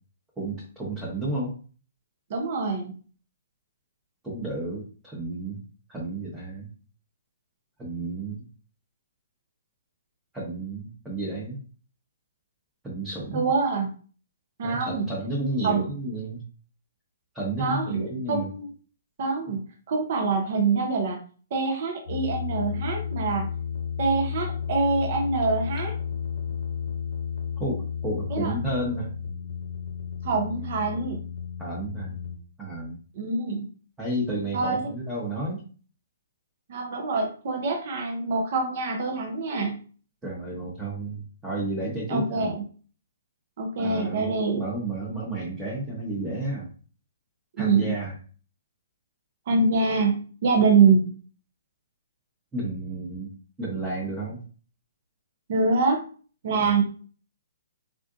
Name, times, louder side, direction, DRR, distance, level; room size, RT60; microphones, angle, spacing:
voice 1, 0.4-1.5 4.2-5.6 5.9-6.7 7.8-8.5 10.3-11.6 12.8-13.5 14.6-16.4 17.3-18.5 27.6-29.1 31.6-32.2 32.6-33.0 34.0-35.6 40.2-42.5 43.8-46.7 47.6-48.1 52.5-53.3 53.6-54.4 56.6-56.7, right 2 dB, 10° right, -6 dB, 0.9 m, -32 dB
voice 2, 2.3-2.9 13.3-13.9 14.6-15.1 15.6-15.9 17.6-18.0 18.3-18.7 19.2-19.6 19.9-21.2 21.5-23.5 24.0-25.9 28.3-28.6 30.2-31.2 33.1-33.7 34.5-34.9 36.7-39.8 42.1-42.6 43.6-44.6 47.6-48.0 49.5-51.1 55.5-56.0 56.4-56.8, right 4 dB, 50° right, 2 dB, 0.7 m, -25 dB
sound 1, 22.1-32.4, left 7 dB, 75° left, 0.7 m, -32 dB
3.6 x 2.5 x 2.5 m, 0.40 s
hypercardioid pair, 130°, 0 cm